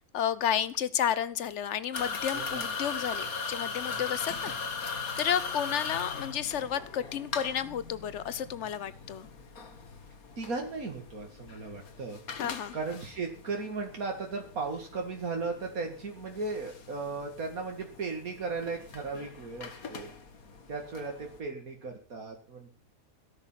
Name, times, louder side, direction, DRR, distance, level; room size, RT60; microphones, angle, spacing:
voice 1, 0.1-9.3 12.3-12.8, left 9 dB, 55° left, 17 dB, 1.2 m, -32 dB
sound 1, 1.9-21.4, left 5 dB, 75° left, 2.2 m, -40 dB
voice 2, 2.3-2.7 10.4-12.2 12.7-20.1 20.7-22.7, right 4 dB, 75° right, 2 dB, 2.5 m, -36 dB
17.5 x 11.5 x 5.8 m, 0.42 s
omnidirectional pair, 1.5 m